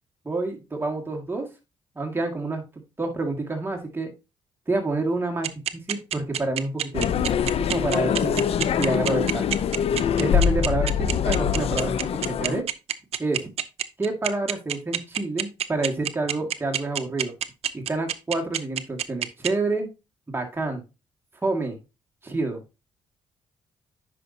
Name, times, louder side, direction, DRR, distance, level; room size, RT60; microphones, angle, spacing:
voice 1, 0.3-1.5 2.0-2.6 3.0-4.1 4.7-5.5 5.9-7.2 7.6-8.4 8.8-9.6 10.2-12.7 13.2-13.5 14.0-17.3 17.7-19.9 20.3-20.8 21.4-21.8 22.2-22.6, right 2 dB, 20° right, 1 dB, 1.9 m, -28 dB
sound 1, 5.4-19.5, right 11 dB, 70° right, 0.6 m, -26 dB
sound 2, 6.9-12.6, left 8 dB, 65° left, 0.5 m, -24 dB
9.6 x 5.3 x 2.8 m, 0.28 s
supercardioid pair, 65°, 11 cm